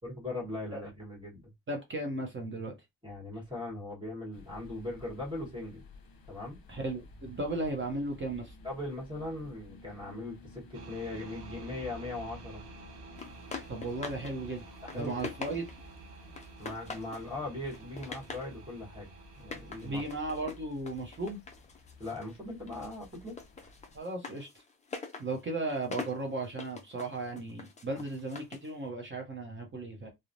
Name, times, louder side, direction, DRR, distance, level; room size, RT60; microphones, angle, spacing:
voice 1, 0.0-1.5 3.0-5.8 6.3-6.6 8.6-12.6 14.8-15.2 16.6-19.1 19.4-20.0 22.0-23.4, left 2 dB, 10° right, 1.2 m, -39 dB
voice 2, 1.7-2.8 6.7-8.5 13.7-14.6 14.9-15.7 19.8-21.4 23.9-24.5 25.2-30.1, right 2 dB, 30° right, 0.6 m, -35 dB
sound 1, 4.3-24.0, left 2 dB, 60° left, 0.8 m, -54 dB
sound 2, 10.7-20.5, right 4 dB, 70° right, 0.7 m, -50 dB
sound 3, 13.2-14.3 14.7-15.9 16.4-17.3 17.7-18.5 19.4-22.4 22.7-28.7, left 4 dB, 20° left, 0.3 m, -44 dB
3.0 x 2.0 x 2.5 m
wide cardioid pair, 155°, 41 cm